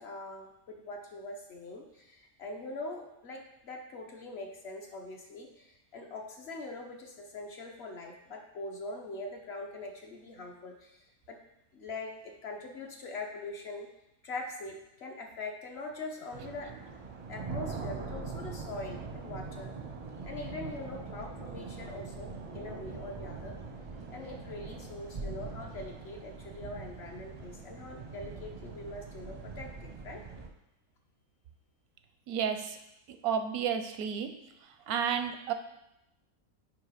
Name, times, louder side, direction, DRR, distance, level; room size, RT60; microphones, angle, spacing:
voice 1, 0.0-11.4 11.7-13.9 14.2-16.7 17.3-19.7 20.2-23.6 24.1-30.2, left 2 dB, 55° left, 2 dB, 1.0 m, -42 dB
sound 1, 16.3-30.5, right 4 dB, 40° right, 0.5 m, -42 dB
voice 2, 32.3-32.6 33.2-34.3 34.9-35.5, right 7 dB, 85° right, 8 dB, 1.1 m, -31 dB
9.0 x 3.0 x 5.0 m, 0.87 s
omnidirectional pair, 1.5 m